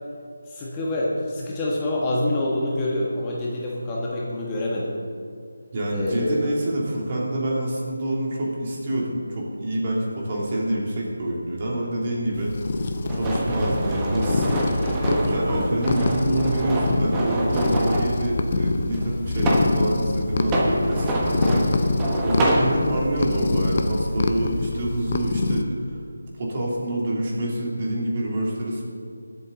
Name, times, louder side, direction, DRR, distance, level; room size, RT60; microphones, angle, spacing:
voice 1, 0.5-5.0 5.9-6.4, left 1 dB, 15° left, -5 dB, 1.3 m, -26 dB
voice 2, 5.7-12.5 13.0-14.5 15.0-21.9 22.2-26.0 26.4-28.8, right 1 dB, 35° right, -3 dB, 2.7 m, -26 dB
sound 1, 12.3-25.6, left 3 dB, 40° left, 0.8 m, -26 dB
sound 2, 13.1-18.1 18.9-19.8 20.4-22.7, right 1 dB, 15° right, 1.2 m, -25 dB
20.5 x 7.8 x 3.9 m, 2.2 s
figure-of-eight pair, 165°, 0 cm